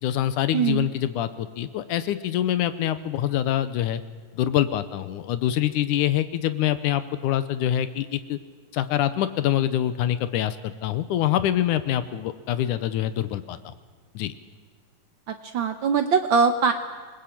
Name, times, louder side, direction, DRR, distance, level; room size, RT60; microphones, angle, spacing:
voice 1, 0.0-4.0 4.3-8.4 8.7-13.7 14.1-14.3, left 11 dB, 85° left, 12 dB, 2.4 m, -25 dB
voice 2, 0.5-0.9 15.3-16.7, right 5 dB, 75° right, 7 dB, 1.1 m, -22 dB
26.5 x 20.5 x 8.6 m, 1.5 s
omnidirectional pair, 3.5 m